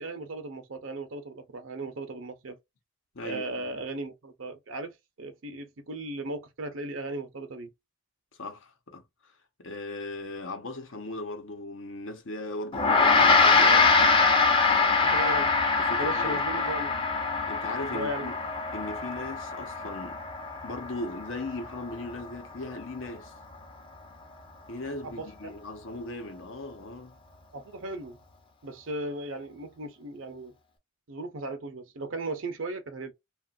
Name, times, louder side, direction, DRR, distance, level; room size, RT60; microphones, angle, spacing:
voice 1, 0.0-2.6 3.2-4.9 5.2-7.7 13.2-13.9 15.0-15.5 16.0-16.9 17.9-18.3 25.0-25.6 27.5-28.2 28.6-30.5 31.1-33.1, right 2 dB, 75° right, 0.6 m, -36 dB
voice 2, 3.1-3.8 8.4-9.0 9.6-14.2 14.7-15.0 15.8-16.4 17.5-18.3 18.7-20.2 20.6-23.3 24.7-27.2, left 2 dB, 75° left, 0.9 m, -38 dB
Gong, 12.7-22.4, left 4 dB, 25° left, 0.6 m, -24 dB
2.9 x 2.4 x 2.4 m
head